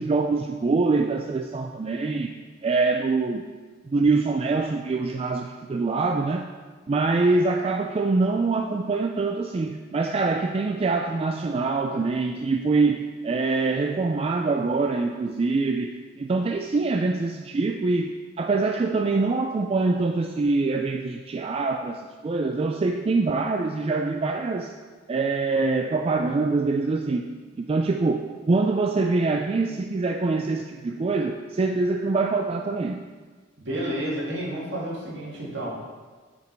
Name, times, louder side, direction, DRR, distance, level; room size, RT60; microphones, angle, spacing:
voice 1, 0.0-2.3 2.6-3.4 3.9-6.5 6.9-24.7 25.1-27.3 27.6-33.0, right 3 dB, 30° right, 3 dB, 0.3 m, -24 dB
voice 2, 33.6-35.7, right 1 dB, 65° right, -4 dB, 2.1 m, -30 dB
8.0 x 5.2 x 4.6 m, 1.4 s
head